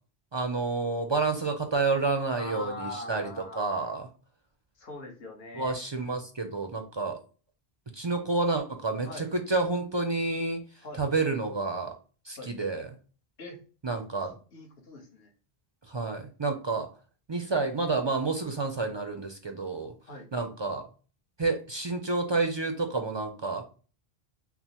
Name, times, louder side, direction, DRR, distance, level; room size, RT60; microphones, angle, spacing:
voice 1, 0.3-3.3 3.6-4.1 5.5-7.2 7.9-10.6 11.0-11.9 12.3-12.9 13.8-14.3 15.9-16.9 17.3-19.9 20.3-20.8 21.4-23.6, right 3 dB, 45° right, 5 dB, 0.3 m, -29 dB
voice 2, 2.3-3.7 4.8-5.8 9.0-9.3 10.8-11.0 12.4-12.5 13.4-13.6 14.2-15.3 20.1-20.3, left 2 dB, 75° left, 1 dB, 1.2 m, -42 dB
5.8 x 2.0 x 2.9 m, 0.38 s
omnidirectional pair, 1.0 m